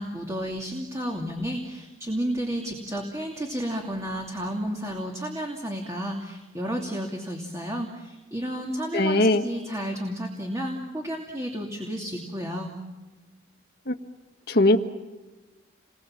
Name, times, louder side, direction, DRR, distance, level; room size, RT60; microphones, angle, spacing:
voice 1, 0.0-12.7, equal, 15° right, 1 dB, 2.7 m, -32 dB
voice 2, 8.9-9.4 13.9-14.0 14.5-14.8, left 1 dB, 55° left, 6 dB, 1.8 m, -19 dB
30.0 x 21.5 x 7.5 m, 1.2 s
head